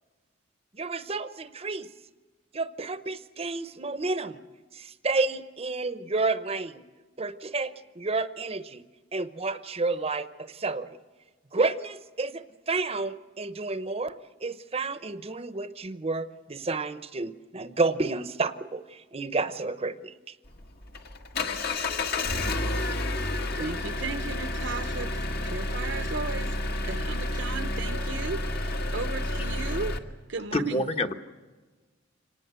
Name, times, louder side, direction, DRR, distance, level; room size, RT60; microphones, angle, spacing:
voice 1, 0.8-1.9 2.5-4.4 4.8-6.8 7.2-8.8 9.1-11.0 11.5-14.2 14.4-20.1, right 3 dB, 30° right, 13 dB, 0.8 m, -30 dB
Engine, 20.5-30.0, left 1 dB, 55° left, 1.5 m, -30 dB
voice 2, 23.6-26.6 26.8-30.0 30.3-30.9, right 4 dB, 65° right, 12 dB, 0.9 m, -36 dB
voice 3, 30.5-31.1, left 1 dB, 35° left, 7 dB, 1.1 m, -26 dB
25.5 x 19.0 x 8.2 m, 1.3 s
head